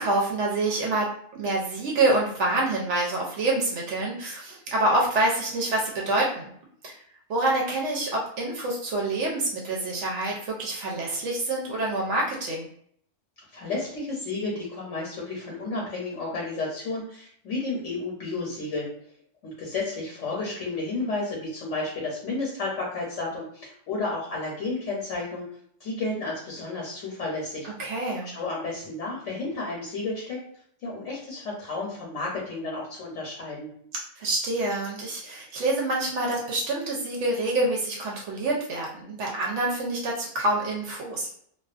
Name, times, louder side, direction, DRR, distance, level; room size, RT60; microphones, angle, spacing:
voice 1, 0.0-6.5 6.8-7.0 7.3-12.7 27.6-28.3 34.2-41.4, right 2 dB, 75° right, -1 dB, 0.9 m, -27 dB
voice 2, 13.5-18.9 19.4-25.5 25.8-27.7 28.3-30.4 30.8-33.7, left 3 dB, 75° left, -3 dB, 1.0 m, -32 dB
2.4 x 2.2 x 2.4 m, 0.64 s
omnidirectional pair, 1.3 m